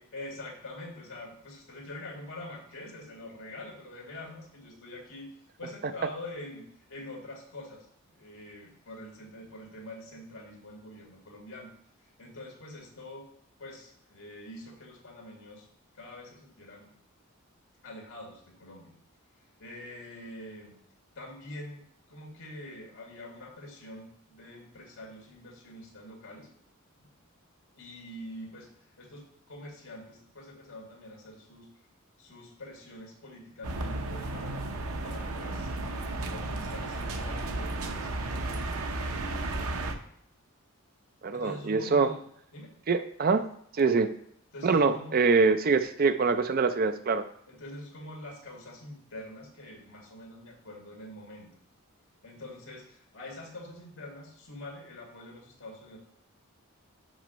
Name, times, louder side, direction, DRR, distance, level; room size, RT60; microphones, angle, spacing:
voice 1, 0.1-5.3 5.6-7.9 8.1-11.7 12.2-13.3 13.6-15.7 15.9-16.9 17.8-18.9 19.6-20.7 21.2-21.8 22.1-26.5 27.0-27.1 27.7-28.7 29.0-31.7 32.2-34.7 35.0-38.1 41.3-42.2 42.5-42.8 44.5-45.4 47.5-51.5 52.2-56.0, left 1 dB, 70° left, 0 dB, 2.2 m, -45 dB
sound 1, 33.6-40.0, right 2 dB, 90° right, 0.8 m, -33 dB
voice 2, 41.2-42.1 42.9-43.4 43.8-44.1 44.6-47.2, right 4 dB, 45° right, 9 dB, 0.4 m, -24 dB
6.2 x 5.5 x 5.1 m, 0.68 s
head